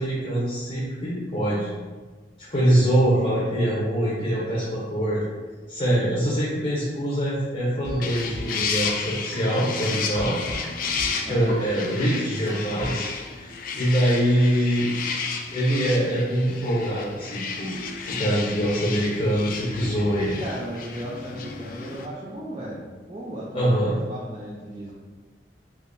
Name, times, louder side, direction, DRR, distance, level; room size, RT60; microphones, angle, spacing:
voice 1, 0.0-1.7 2.5-5.2 5.7-10.4 11.3-13.1 13.4-14.9 15.5-20.4 23.5-24.0, equal, 35° left, -6 dB, 0.7 m, -24 dB
voice 2, 3.0-3.5 11.2-11.6 20.4-24.9, right 1 dB, 30° right, -6 dB, 0.4 m, -36 dB
sound 1, 7.8-13.1, equal, 80° left, 0.8 m, -37 dB
sound 2, 8.0-22.1, left 5 dB, 50° left, 0.3 m, -33 dB
3.5 x 2.7 x 2.6 m, 1.4 s
head